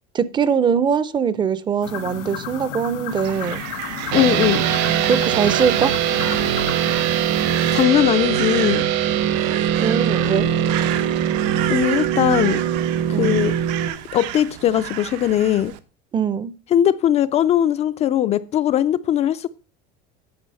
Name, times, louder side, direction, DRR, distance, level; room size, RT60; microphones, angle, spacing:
voice 1, 0.1-3.6 5.0-6.0 9.5-10.5 13.1-13.4 16.1-16.5, right 7 dB, 20° right, 0.5 m, -22 dB
sound 1, 1.8-7.8, left 9 dB, 80° left, 1.8 m, -33 dB
Crow, 3.1-15.8, right 12 dB, 80° right, 1.0 m, -32 dB
voice 2, 4.1-4.6 7.4-8.9 11.7-12.6 13.2-13.5 14.1-15.7 16.7-19.5, left 11 dB, 30° left, 0.4 m, -19 dB
sound 2, 4.1-13.9, right 9 dB, 60° right, 1.2 m, -21 dB
9.5 x 6.2 x 5.4 m
cardioid pair, 150°, 21 cm